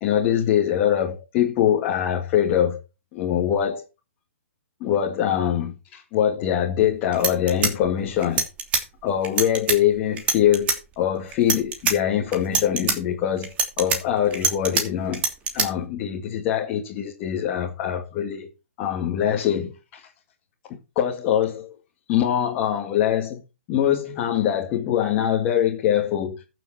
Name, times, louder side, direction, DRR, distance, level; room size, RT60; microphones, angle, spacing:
voice 1, 0.0-2.8 3.1-3.8 4.8-8.4 9.0-13.5 13.8-15.2 15.5-18.5 18.8-20.0 21.0-21.7 22.1-23.4 23.7-26.4, left 10 dB, 30° left, 2.2 m, -23 dB
sound 1, 6.8-6.9 7.1-8.8 9.2-9.8 10.2-10.8 11.3-11.9 12.3-13.0 13.4-14.8 15.1-15.7, right 5 dB, 20° right, 2.8 m, -23 dB
14.0 x 7.0 x 4.3 m
hypercardioid pair, 150°, 7 cm